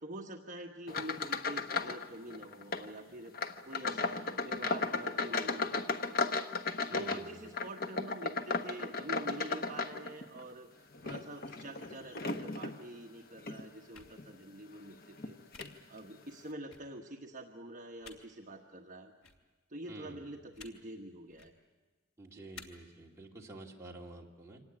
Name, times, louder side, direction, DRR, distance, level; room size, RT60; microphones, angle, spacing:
voice 1, 0.0-3.3 3.6-6.2 6.9-15.4 15.9-19.1 19.7-21.5 22.4-22.5, right 1 dB, 40° right, 0 dB, 1.3 m, -46 dB
sound 1, 0.9-2.1 2.3-2.9 3.3-10.4 10.9-12.8 13.4-13.6 14.2-14.3 15.2-15.3 15.6-15.7, left 4 dB, 45° left, 1.0 m, -35 dB
voice 2, 6.9-7.5 19.9-20.4 22.2-24.6, right 2 dB, 15° right, -2 dB, 2.4 m, -50 dB
sound 2, 13.9-14.1 15.5-15.7 16.7-16.8 18.0-18.2 19.2-19.4 20.5-20.7 21.3-21.5 22.5-22.6, left 5 dB, 85° left, 2.9 m, -50 dB
25.5 x 18.5 x 9.8 m, 1.4 s
head